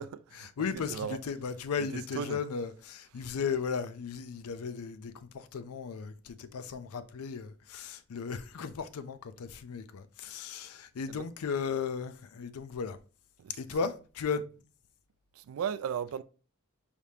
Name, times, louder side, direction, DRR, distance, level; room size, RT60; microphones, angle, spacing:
voice 1, 0.0-1.2 1.8-2.4 3.2-3.3 11.1-11.3 13.4-13.9 15.3-16.2, right 7 dB, 70° right, 0.3 m, -37 dB
voice 2, 0.6-13.0 13.6-14.4, left 5 dB, 80° left, 0.4 m, -36 dB
4.8 x 3.4 x 2.7 m
head